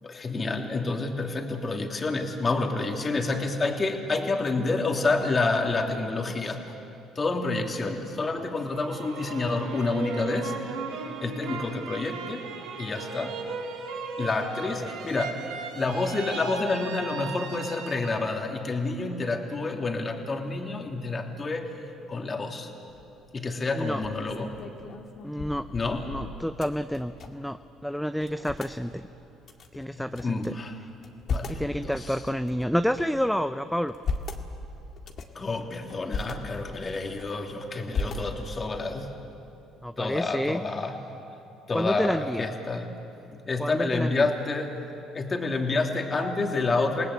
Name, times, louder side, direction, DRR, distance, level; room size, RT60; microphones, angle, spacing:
voice 1, 0.0-6.7 7.1-10.5 11.2-12.4 12.8-13.3 14.2-15.3 15.7-21.7 22.1-22.7 23.3-24.6 25.7-26.1 29.9-30.7 31.0-32.2 35.3-39.2 40.0-41.0 41.7-42.9 43.3-44.7 45.1-47.1, left 3 dB, 35° left, 2 dB, 3.0 m, -29 dB
sound 1, 8.6-18.4 18.9-19.5, right 4 dB, 80° right, 2.5 m, -37 dB
sound 2, 22.9-23.3 23.8-27.5 27.8-27.9 28.2-28.7 29.4-30.5 30.9-31.7 32.3-33.2 33.7-34.4 35.0-35.4 35.9-36.3 36.8-37.5 37.9-38.6, left 4 dB, 55° left, 2.0 m, -36 dB
voice 2, 25.2-25.7 26.1-29.1 29.7-30.5 31.5-33.9 34.4-34.5 38.0-38.2 39.8-40.6 41.7-42.5 43.6-44.3, equal, ahead, 10 dB, 0.7 m, -29 dB
29.0 x 18.5 x 8.4 m, 2.7 s
hypercardioid pair, 60°, 0 cm